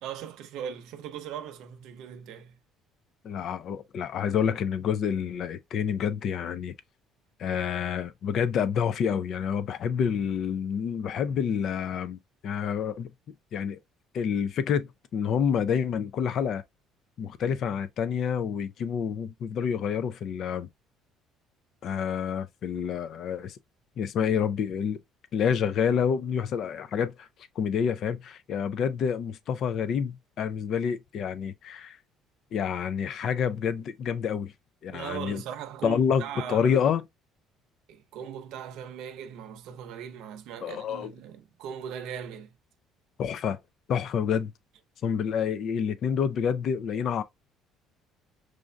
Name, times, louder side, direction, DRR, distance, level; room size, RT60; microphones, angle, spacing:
voice 1, 0.0-2.6 34.9-36.7 37.9-42.5, right 9 dB, 70° right, 0.7 m, -39 dB
voice 2, 3.2-6.7 7.4-12.2 12.4-13.1 13.5-13.8 14.1-16.6 17.2-20.7 21.8-23.6 24.0-25.0 25.3-27.3 27.6-32.0 32.5-34.5 34.8-35.4 35.8-37.0 40.6-41.1 43.2-43.6 43.9-44.5 45.0-47.2, left 7 dB, 45° left, 0.4 m, -28 dB
6.2 x 2.6 x 2.2 m
cardioid pair, 160°, 0 cm